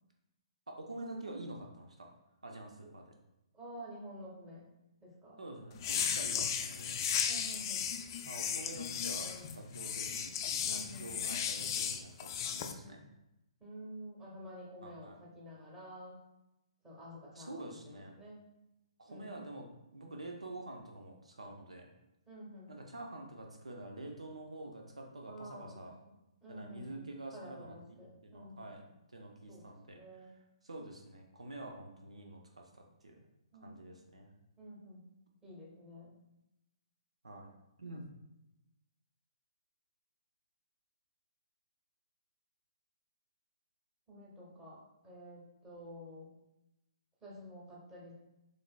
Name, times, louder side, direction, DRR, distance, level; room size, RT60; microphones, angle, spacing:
voice 1, 0.7-2.1 2.4-3.1 5.4-7.0 8.2-10.3 10.6-13.0 14.8-15.2 17.4-18.1 19.0-19.7 19.9-21.9 22.7-25.9 26.5-28.8 29.1-30.0 30.6-33.1 33.6-34.3 37.2-37.5 37.8-38.1, right 2 dB, 85° right, 1 dB, 0.5 m, -47 dB
voice 2, 3.5-4.6 5.0-5.4 7.3-7.9 8.7-8.8 9.1-9.5 10.6-11.2 12.5-13.0 13.6-16.2 16.8-17.7 18.2-18.4 19.1-19.5 22.2-22.7 25.2-25.8 26.1-26.2 26.4-28.7 29.5-30.3 33.5-33.8 34.6-35.0 35.4-36.1 44.1-46.3 47.2-48.1, equal, 15° right, -5 dB, 1.2 m, -50 dB
sound 1, 5.8-12.7, left 8 dB, 40° left, 0.3 m, -35 dB
3.8 x 3.2 x 2.2 m, 0.91 s
hypercardioid pair, 135°, 3 cm